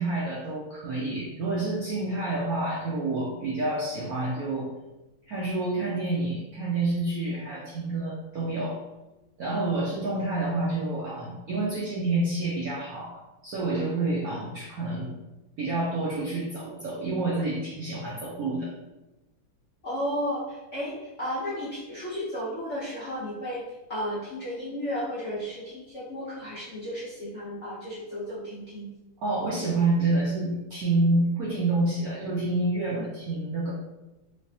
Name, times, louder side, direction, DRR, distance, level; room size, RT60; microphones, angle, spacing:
voice 1, 0.0-4.7 5.3-8.8 9.4-15.1 15.6-18.7 29.2-33.7, right 2 dB, 75° right, -5 dB, 0.8 m, -28 dB
voice 2, 19.8-23.6 23.9-28.9 32.9-33.0, equal, 55° left, -9 dB, 0.8 m, -33 dB
3.3 x 3.2 x 2.7 m, 1.0 s
omnidirectional pair, 2.3 m